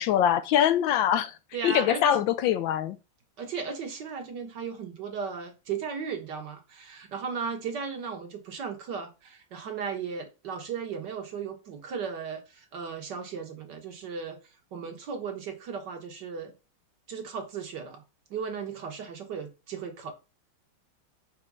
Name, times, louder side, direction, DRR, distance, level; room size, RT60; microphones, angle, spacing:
voice 1, 0.0-1.4 1.6-3.0, left 10 dB, 75° left, 1.2 m, -23 dB
voice 2, 1.5-2.0 3.4-14.4 14.7-16.5 17.1-18.0 18.3-20.1, right 6 dB, 60° right, 1.8 m, -36 dB
5.5 x 4.5 x 6.1 m
omnidirectional pair, 2.3 m